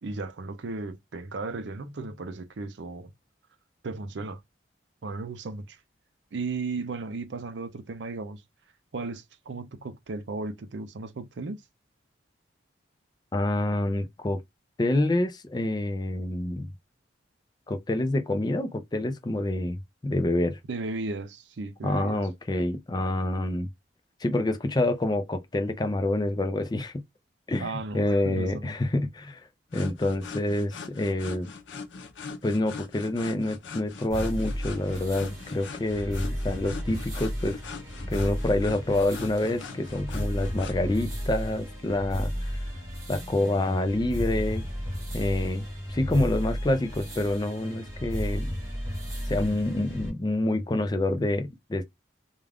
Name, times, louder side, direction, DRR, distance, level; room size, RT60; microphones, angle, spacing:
voice 1, 0.0-3.1 3.8-4.4 5.0-5.8 6.3-8.4 8.9-11.6 20.7-22.3 27.6-28.8, right 3 dB, 75° right, 0.5 m, -35 dB
voice 2, 13.3-14.4 14.8-16.7 17.7-20.6 21.8-23.7 24.2-27.0 27.5-29.4 29.7-31.5 32.4-37.6 38.1-42.7 43.1-44.6 45.1-48.5 49.3-51.8, left 1 dB, 20° left, 0.4 m, -27 dB
sound 1, 29.7-40.8, left 5 dB, 80° left, 0.6 m, -41 dB
sound 2, 34.1-50.1, equal, 15° right, 1.1 m, -34 dB
2.4 x 2.3 x 3.3 m
head